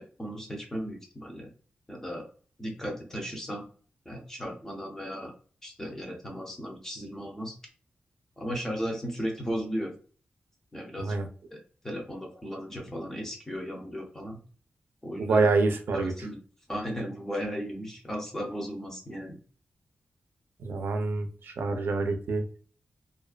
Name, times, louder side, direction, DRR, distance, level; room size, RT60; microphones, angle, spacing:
voice 1, 0.0-1.5 1.9-2.2 2.6-3.6 4.0-5.3 5.6-7.5 8.4-9.9 10.7-11.2 11.5-11.6 11.8-14.4 15.0-15.5 15.9-16.4 16.7-19.4, equal, 10° left, 0 dB, 0.7 m, -36 dB
voice 2, 15.2-16.1 20.6-22.4, right 3 dB, 80° right, 6 dB, 0.5 m, -26 dB
2.4 x 2.2 x 2.3 m, 0.42 s
wide cardioid pair, 140°, 4 cm